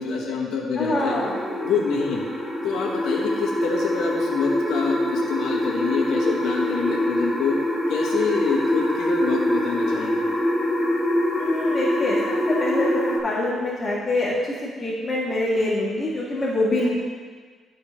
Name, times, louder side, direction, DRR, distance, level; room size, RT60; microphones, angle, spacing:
voice 1, 0.0-1.2 1.6-2.2 2.6-7.5 7.9-10.2, left 5 dB, 80° left, -2 dB, 1.4 m, -26 dB
voice 2, 0.8-1.4 11.4-12.2 12.5-14.4 14.6-16.9, left 1 dB, 25° left, -10 dB, 1.9 m, -25 dB
sound 1, 1.1-13.2, left 1 dB, ahead, 1.7 m, -24 dB
12.0 x 4.6 x 3.3 m, 1.5 s
cardioid pair, 90°, 0 cm